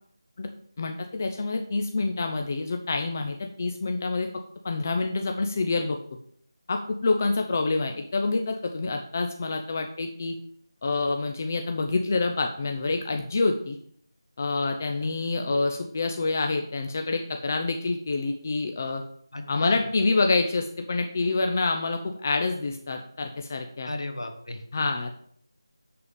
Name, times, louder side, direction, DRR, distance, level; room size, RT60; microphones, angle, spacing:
voice 1, 0.8-4.3 4.6-6.0 6.7-10.4 10.8-13.8 14.4-19.0 19.5-23.9 24.7-25.1, left 3 dB, 30° left, 4 dB, 0.6 m, -27 dB
voice 2, 19.3-19.9 23.8-24.9, left 2 dB, 70° left, 5 dB, 1.9 m, -36 dB
7.2 x 6.8 x 5.1 m, 0.63 s
figure-of-eight pair, 170°, 3 cm